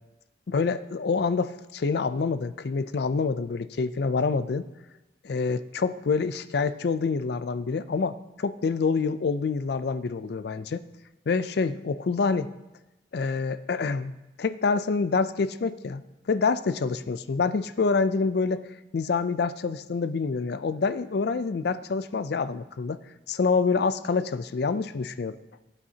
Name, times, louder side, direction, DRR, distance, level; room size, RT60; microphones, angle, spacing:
voice 1, 0.5-4.7 5.2-10.8 11.3-12.5 13.1-14.1 14.4-16.0 16.3-18.7 18.9-23.0 23.3-25.4, left 4 dB, 55° left, 13 dB, 0.4 m, -26 dB
15.0 x 9.0 x 2.8 m, 1.0 s
head